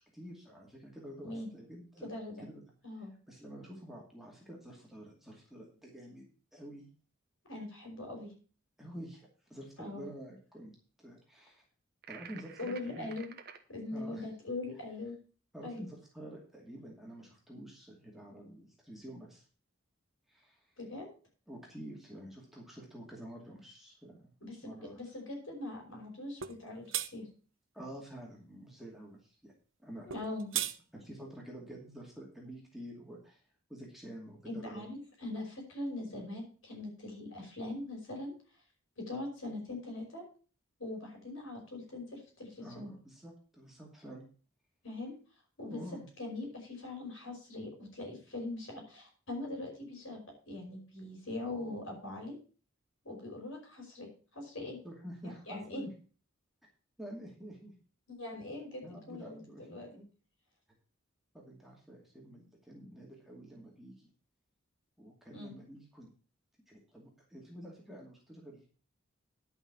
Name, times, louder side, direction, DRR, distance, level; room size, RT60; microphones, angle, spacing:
voice 1, 0.1-2.1 2.4-2.6 3.3-6.9 8.8-11.6 12.1-13.1 13.9-14.3 15.5-19.4 20.3-20.6 21.5-24.4 24.6-25.0 27.7-29.5 29.8-30.1 30.9-33.4 33.7-34.8 42.6-44.2 45.7-46.1 54.8-55.9 57.0-57.7 58.8-60.1 61.3-64.1 65.0-66.1 66.7-68.7, right 1 dB, ahead, -2 dB, 2.4 m, -48 dB
voice 2, 2.0-2.5 2.8-3.1 7.5-8.3 9.8-10.1 12.6-13.3 13.7-15.2 15.6-15.9 20.8-21.1 24.4-27.3 30.1-30.5 34.5-38.3 39.0-40.2 40.8-42.9 44.8-45.1 45.6-45.8 46.2-50.2 50.5-52.4 53.0-54.8 55.5-55.8 58.1-60.0 65.3-65.6, left 2 dB, 70° left, 1 dB, 5.4 m, -41 dB
sound 1, 12.0-13.6, right 7 dB, 50° right, 1.1 m, -50 dB
sound 2, 26.4-26.6 26.9-27.1 30.1-30.8, right 11 dB, 65° right, 0.7 m, -34 dB
11.0 x 5.8 x 7.1 m, 0.39 s
head